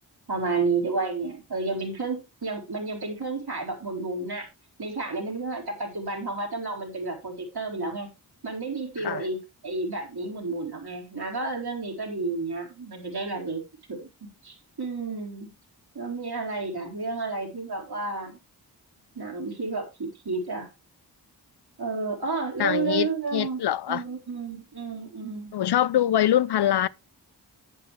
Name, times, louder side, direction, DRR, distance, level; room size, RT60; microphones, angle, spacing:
voice 1, 0.3-4.5 4.8-8.1 8.4-13.6 13.9-15.5 15.9-18.4 19.2-20.7 21.8-23.6 23.9-25.5, right 3 dB, 65° right, 4.4 m, -31 dB
voice 2, 22.6-24.0 25.5-26.9, left 11 dB, 65° left, 0.5 m, -24 dB
10.5 x 8.6 x 3.4 m
cardioid pair, 40°, 42 cm